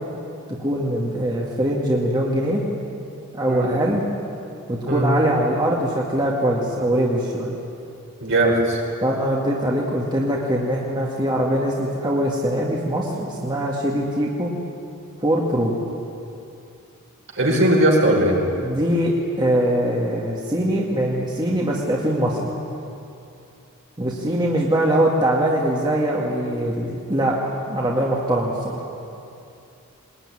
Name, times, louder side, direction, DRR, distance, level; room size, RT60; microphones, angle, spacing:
voice 1, 0.6-2.6 3.3-4.0 4.7-7.5 9.0-14.5 15.2-15.7 18.6-22.5 24.0-27.4 27.7-28.8, right 1 dB, 20° right, -3 dB, 2.1 m, -22 dB
voice 2, 8.2-8.8 17.3-18.4, right 1 dB, 55° right, -1 dB, 5.5 m, -18 dB
21.5 x 20.5 x 9.9 m, 2.7 s
head